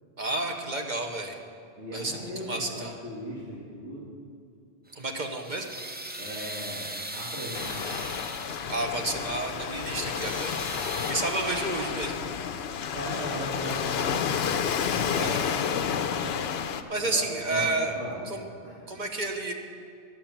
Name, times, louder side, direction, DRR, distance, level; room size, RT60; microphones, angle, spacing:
voice 1, 0.2-1.4 1.9-2.9 5.0-5.7 8.7-10.5 10.8-12.2 15.1-15.4 16.9-18.0 18.3-18.4 18.9-19.5, right 2 dB, 45° right, 3 dB, 1.0 m, -31 dB
voice 2, 1.8-4.0 6.2-8.0 12.9-14.4 17.0-18.2 18.6-18.8 19.0-19.1, equal, 80° right, -7 dB, 2.3 m, -38 dB
sound 1, 4.9-8.9 9.3-11.1, right 1 dB, 15° right, 0.3 m, -39 dB
Waves surf, 7.5-16.8, left 7 dB, 65° left, 0.8 m, -30 dB
11.5 x 7.6 x 7.2 m, 2.3 s
omnidirectional pair, 1.2 m